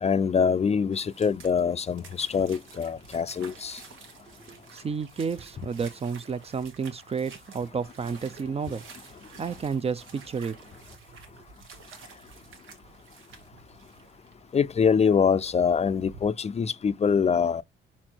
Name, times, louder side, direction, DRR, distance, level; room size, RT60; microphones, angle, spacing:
voice 1, 0.0-3.8 14.5-17.6, left 6 dB, 35° left, 0.4 m, -24 dB
sound 1, 0.9-16.3, right 5 dB, 90° right, 1.5 m, -50 dB
voice 2, 4.5-10.6, right 5 dB, 30° right, 0.5 m, -32 dB
5.3 x 4.3 x 4.5 m
cardioid pair, 90°, 20 cm